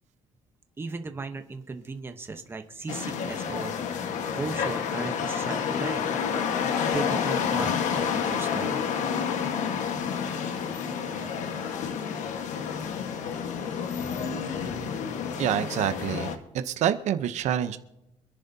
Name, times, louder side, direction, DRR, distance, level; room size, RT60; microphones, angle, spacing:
voice 1, 0.8-3.7 4.3-6.1 6.9-8.8, right 3 dB, 15° right, 7 dB, 1.0 m, -36 dB
sound 1, 2.9-16.4, left 7 dB, 70° left, 1.4 m, -29 dB
voice 2, 11.0-11.5 15.4-17.8, right 10 dB, 65° right, 10 dB, 0.8 m, -28 dB
27.0 x 10.5 x 2.8 m, 0.90 s
cardioid pair, 165°, 13 cm